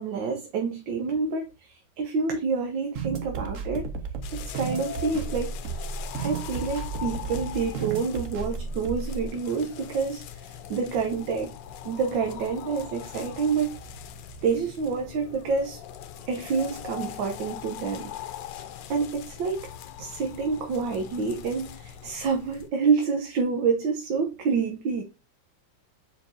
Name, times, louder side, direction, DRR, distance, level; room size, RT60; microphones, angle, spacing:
voice 1, 0.0-3.9 4.3-5.6 6.2-11.5 11.8-13.7 14.4-15.8 16.3-18.1 18.9-19.7 20.0-25.0, right 5 dB, 80° right, 1.7 m, -28 dB
sound 1, 2.9-9.3, right 5 dB, 50° right, 1.1 m, -34 dB
sound 2, 4.2-22.7, left 10 dB, 75° left, 1.3 m, -41 dB
7.3 x 5.2 x 2.6 m
omnidirectional pair, 2.0 m